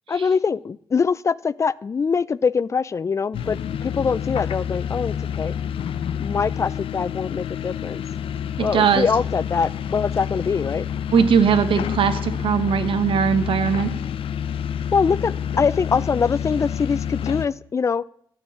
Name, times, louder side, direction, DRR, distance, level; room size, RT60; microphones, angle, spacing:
voice 1, 0.1-5.5 6.2-8.0 8.6-10.9 14.9-18.0, left 5 dB, 35° left, 20 dB, 0.4 m, -23 dB
sound 1, 3.3-17.5, left 8 dB, 75° left, 0.7 m, -28 dB
voice 2, 8.6-9.1 11.1-13.9, right 7 dB, 70° right, 9 dB, 1.1 m, -20 dB
13.5 x 4.6 x 8.5 m, 0.69 s
cardioid pair, 85°, 9 cm